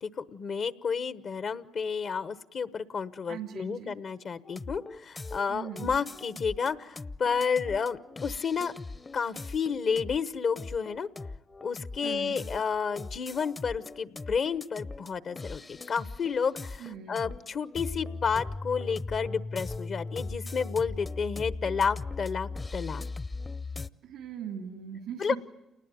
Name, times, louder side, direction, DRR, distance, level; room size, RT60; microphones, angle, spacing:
voice 1, 0.0-8.7 9.1-11.1 11.6-23.0 25.2-25.4, left 6 dB, 55° left, 13 dB, 1.1 m, -31 dB
voice 2, 3.3-4.0 5.5-5.9 12.0-12.5 16.8-17.3 24.0-25.4, right 8 dB, 85° right, 5 dB, 2.5 m, -40 dB
sound 1, 4.5-23.9, left 3 dB, 30° left, 0.8 m, -39 dB
28.5 x 19.5 x 9.2 m, 1.0 s
supercardioid pair, 65°, 0 cm